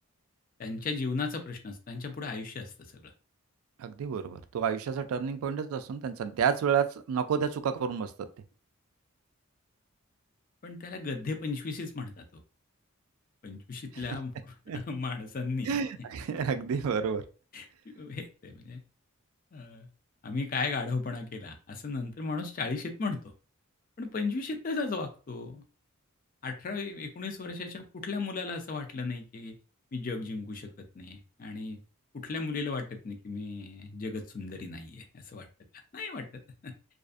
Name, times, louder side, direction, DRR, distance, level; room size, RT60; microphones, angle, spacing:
voice 1, 0.6-3.0 10.6-12.4 13.4-15.8 17.5-17.7 18.0-18.8 19.5-19.9 20.2-23.2 24.0-25.6 26.4-29.6 29.9-30.7 31.0-31.8 32.1-35.5 35.9-36.3 36.6-36.7, left 4 dB, 40° left, 5 dB, 0.4 m, -35 dB
voice 2, 3.8-8.1 13.9-14.1 14.7-14.8 15.6-17.2, right 7 dB, 75° right, 10 dB, 0.3 m, -30 dB
2.4 x 2.4 x 2.4 m, 0.35 s
head